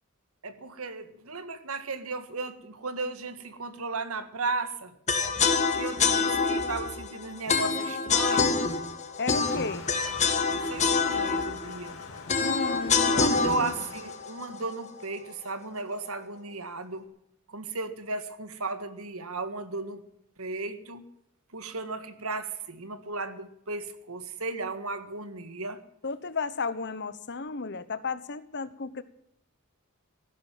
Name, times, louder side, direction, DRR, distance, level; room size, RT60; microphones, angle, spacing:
voice 1, 0.4-4.9 5.7-8.6 10.6-12.0 13.0-17.1 17.5-20.0 20.4-21.0 21.5-25.8, right 3 dB, 80° right, 11 dB, 1.7 m, -35 dB
sound 1, 5.1-15.2, left 5 dB, 35° left, 1.7 m, -26 dB
voice 2, 9.2-9.8 12.4-13.8 26.0-29.0, left 4 dB, 55° left, 15 dB, 1.0 m, -34 dB
Waves surf, 9.3-14.4, left 3 dB, 85° left, 3.2 m, -46 dB
15.0 x 12.0 x 7.5 m, 0.78 s
head